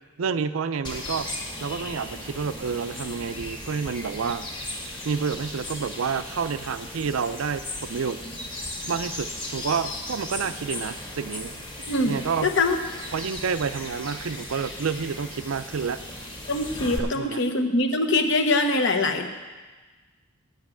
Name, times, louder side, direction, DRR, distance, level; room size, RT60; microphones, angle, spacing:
voice 1, 0.2-1.3 1.6-4.5 5.0-8.2 8.9-11.5 12.1-12.5 13.1-16.0 17.0-17.4, right 6 dB, 70° right, 12 dB, 0.5 m, -29 dB
sound 1, 0.8-17.0, left 1 dB, 20° left, 1.7 m, -37 dB
voice 2, 11.9-12.8 16.5-19.3, left 2 dB, 55° left, 6 dB, 0.9 m, -23 dB
9.1 x 8.2 x 7.5 m, 1.3 s
head